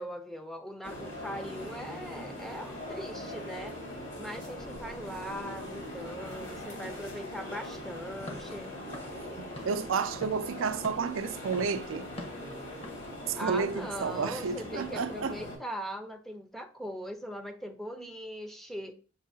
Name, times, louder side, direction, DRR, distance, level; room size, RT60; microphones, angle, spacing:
voice 1, 0.0-3.8 4.2-8.8 13.4-18.9, equal, ahead, 0.5 m, -40 dB
sound 1, 0.8-15.6, left 1 dB, 70° left, 2.5 m, -41 dB
Walk footsteps / Siren, 8.1-13.7, left 1 dB, 30° left, 0.8 m, -47 dB
voice 2, 9.4-12.1 13.3-15.4, right 5 dB, 70° right, 0.4 m, -31 dB
6.8 x 2.7 x 2.7 m
head